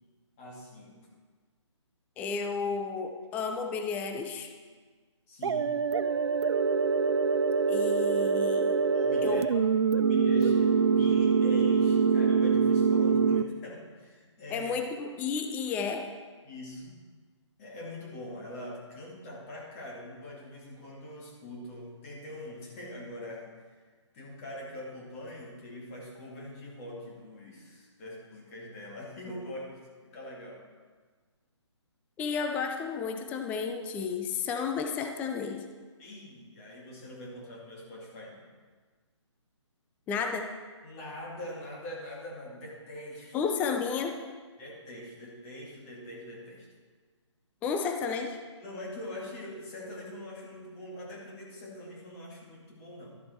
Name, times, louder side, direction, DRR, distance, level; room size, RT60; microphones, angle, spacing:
voice 1, 0.4-1.1 5.3-5.8 8.9-9.5 9.8-14.7 16.4-17.0 17.6-23.5 24.1-30.6 36.0-38.4 40.8-43.4 44.6-46.7 48.6-53.2, left 1 dB, 30° left, -3 dB, 2.5 m, -43 dB
voice 2, 2.2-4.5 7.7-8.8 9.2-9.4 14.5-16.1 32.2-35.7 40.1-40.5 43.3-44.1 47.6-48.4, left 5 dB, 10° left, 5 dB, 0.5 m, -32 dB
sound 1, 5.4-13.4, right 5 dB, 60° right, 0.5 m, -24 dB
12.5 x 7.4 x 4.4 m, 1.5 s
figure-of-eight pair, 145°, 16 cm